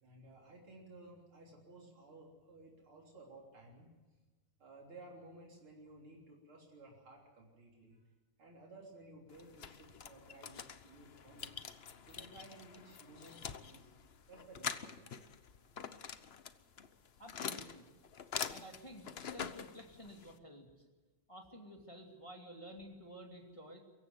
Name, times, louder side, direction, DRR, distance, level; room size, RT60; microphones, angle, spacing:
voice 1, 0.0-3.9 4.6-8.1 8.4-11.6 12.1-13.9 14.3-15.2, right 2 dB, 75° right, -1 dB, 4.4 m, -56 dB
sound 1, 9.3-20.4, left 7 dB, 55° left, 0.7 m, -45 dB
voice 2, 17.2-17.8 18.5-20.8 21.3-23.8, equal, 15° left, 1 dB, 2.6 m, -52 dB
23.5 x 15.5 x 9.4 m, 1.3 s
omnidirectional pair, 2.4 m